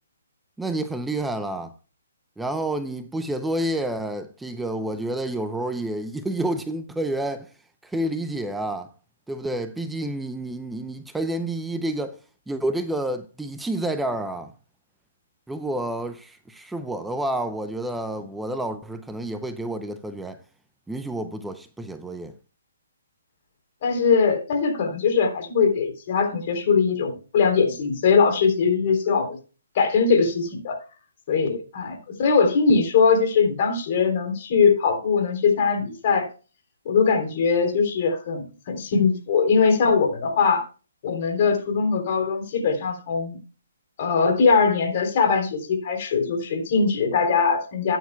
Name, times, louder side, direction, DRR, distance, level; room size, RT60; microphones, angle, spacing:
voice 1, 0.6-1.7 2.4-7.5 7.8-8.9 9.3-12.2 12.5-14.5 15.5-20.4 20.9-22.3, right 1 dB, 5° right, 0.6 m, -29 dB
voice 2, 23.8-29.4 29.8-30.8 31.3-36.3 36.9-40.6 41.0-43.4 44.0-48.0, left 5 dB, 45° left, 3.4 m, -21 dB
14.0 x 9.4 x 2.3 m
hypercardioid pair, 145°, 0 cm